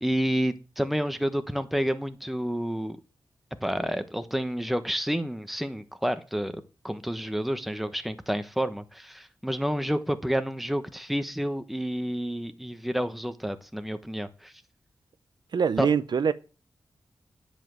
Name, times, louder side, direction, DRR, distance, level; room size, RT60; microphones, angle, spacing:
voice 1, 0.0-3.0 3.6-14.5 15.8-15.9, equal, ahead, 1.1 m, -29 dB
voice 2, 15.5-16.3, right 6 dB, 65° right, 0.7 m, -24 dB
10.5 x 5.1 x 7.6 m
cardioid pair, 75°, 8 cm